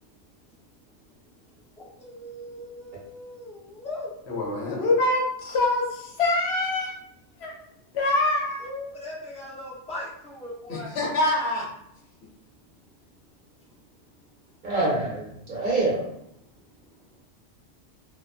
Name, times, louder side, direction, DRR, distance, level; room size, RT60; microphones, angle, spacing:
voice 1, 1.8-4.1 8.6-10.9, left 1 dB, 10° left, -6 dB, 0.5 m, -39 dB
voice 2, 4.3-6.9 7.4-7.5 7.9-8.7 10.7-11.7, left 2 dB, 70° left, -2 dB, 0.9 m, -25 dB
voice 3, 14.6-16.0, right 2 dB, 50° right, -5 dB, 0.8 m, -25 dB
2.3 x 2.2 x 2.4 m, 0.77 s
omnidirectional pair, 1.2 m